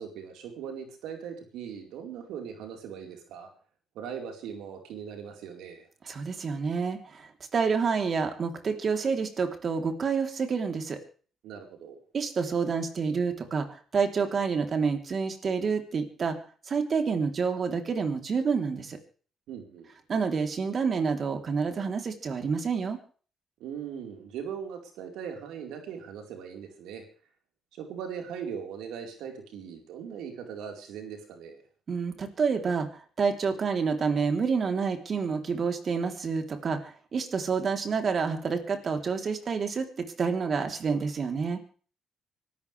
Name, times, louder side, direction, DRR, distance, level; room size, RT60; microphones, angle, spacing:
voice 1, 0.0-3.5 3.9-5.9 11.4-12.0 19.5-19.9 23.6-27.0 27.7-31.6, right 7 dB, 90° right, 3 dB, 4.6 m, -40 dB
voice 2, 6.0-11.0 12.1-16.4 16.7-19.0 20.1-23.0 31.9-39.9 40.2-41.6, right 5 dB, 45° right, 5 dB, 3.6 m, -28 dB
25.5 x 13.5 x 3.5 m, 0.41 s
cardioid pair, 90°, 0 cm